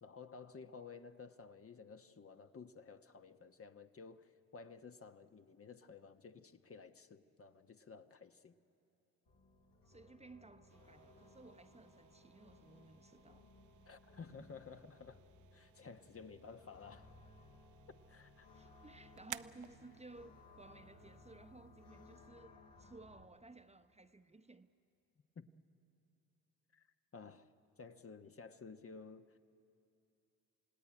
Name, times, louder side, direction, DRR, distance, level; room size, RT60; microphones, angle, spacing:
voice 1, 0.0-8.6 13.9-15.2 15.5-17.1 18.1-18.5 25.3-25.5 26.7-26.9 27.1-27.5 27.8-29.4, left 5 dB, 40° left, 1.1 m, -54 dB
sound 1, 9.3-23.3, left 2 dB, 70° left, 3.4 m, -62 dB
voice 2, 9.9-13.5 18.5-24.7, right 2 dB, 20° right, 1.0 m, -58 dB
sound 2, 10.7-22.3, right 11 dB, 55° right, 0.7 m, -58 dB
28.5 x 17.5 x 9.7 m
supercardioid pair, 55°, 36 cm